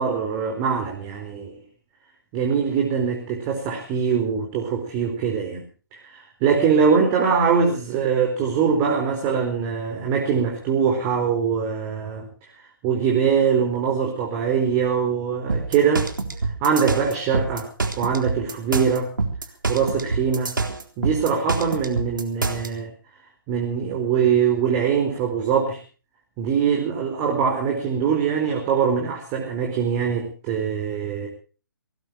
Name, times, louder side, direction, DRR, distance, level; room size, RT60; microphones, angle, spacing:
voice 1, 0.0-1.6 2.3-5.6 5.9-12.3 12.8-16.1 16.4-17.7 18.0-19.1 19.7-20.5 21.0-22.9 23.5-25.8 26.4-31.3, right 6 dB, 20° right, 1 dB, 4.4 m, -22 dB
sound 1, 15.5-22.7, right 3 dB, 65° right, 3.8 m, -26 dB
25.0 x 19.0 x 3.0 m, 0.37 s
figure-of-eight pair, 140°, 12 cm